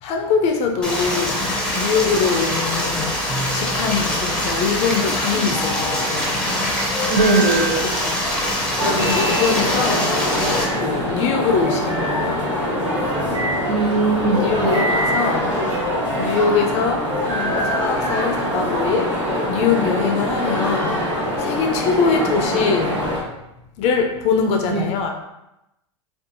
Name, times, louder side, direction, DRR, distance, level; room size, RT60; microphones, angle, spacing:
voice 1, 0.0-1.4 1.7-3.1 3.5-6.4 7.8-8.2 8.5-10.4 10.7-12.5 14.4-19.1 19.5-22.9 23.8-25.1, left 5 dB, 45° left, 3 dB, 0.4 m, -23 dB
Stream, 0.8-10.6, left 1 dB, 5° left, 0.6 m, -23 dB
sound 1, 3.3-4.0 5.3-6.1 6.9-7.7 8.8-9.6 10.2-10.8 11.5-12.3 13.0-13.6 14.3-15.3 15.8-16.3 17.1-17.9, right 1 dB, 15° right, 1.0 m, -28 dB
voice 2, 7.1-7.9 9.0-9.1 13.7-14.9 24.7-24.9, right 3 dB, 70° right, -3 dB, 0.6 m, -20 dB
sound 2, 8.8-23.2, equal, 90° right, 1.3 m, -24 dB
2.6 x 2.3 x 2.6 m, 0.90 s
hypercardioid pair, 115°, 15 cm